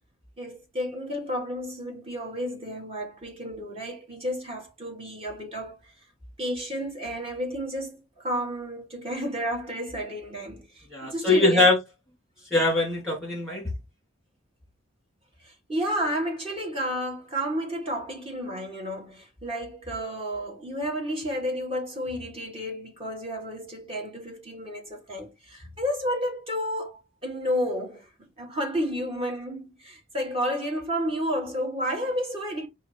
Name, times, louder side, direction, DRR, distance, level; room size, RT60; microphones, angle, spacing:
voice 1, 0.4-5.9 6.4-11.7 15.4-32.7, equal, 30° right, 1.5 m, -31 dB
voice 2, 10.9-11.8 12.5-13.7, left 2 dB, ahead, 2.5 m, -22 dB
4.9 x 2.6 x 3.2 m
head